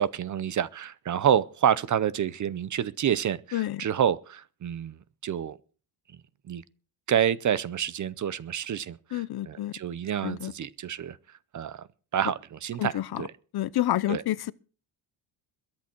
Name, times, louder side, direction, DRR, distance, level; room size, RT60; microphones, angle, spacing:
voice 1, 0.0-5.6 6.5-6.6 7.1-11.2 11.5-11.9 12.1-13.3 14.1-14.2, right 9 dB, 35° right, 0.6 m, -28 dB
voice 2, 9.1-9.8 10.2-10.5 12.8-13.2 13.5-14.5, left 14 dB, 50° left, 0.7 m, -29 dB
22.0 x 8.6 x 4.5 m
cardioid pair, 135°, 50 cm